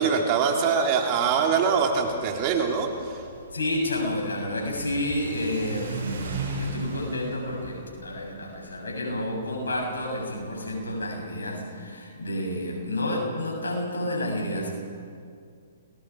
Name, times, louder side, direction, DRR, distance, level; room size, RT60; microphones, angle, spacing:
voice 1, 0.0-3.2, right 6 dB, 40° right, 2 dB, 3.6 m, -23 dB
Car / Accelerating revving vroom, 1.7-11.1, right 3 dB, 70° right, 6.4 m, -38 dB
voice 2, 3.5-14.7, left 1 dB, 90° left, -1 dB, 7.9 m, -30 dB
29.5 x 21.0 x 4.9 m, 2.3 s
hypercardioid pair, 130°, 0 cm